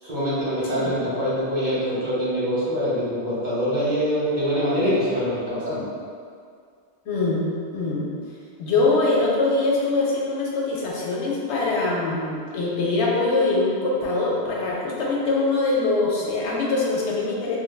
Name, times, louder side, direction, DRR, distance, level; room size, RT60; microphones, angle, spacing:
voice 1, 0.0-5.8, equal, 50° right, -10 dB, 0.8 m, -24 dB
voice 2, 7.1-7.4 7.7-8.1 8.6-17.6, left 3 dB, 85° left, -4 dB, 0.9 m, -23 dB
3.2 x 2.2 x 2.2 m, 2.2 s
omnidirectional pair, 1.1 m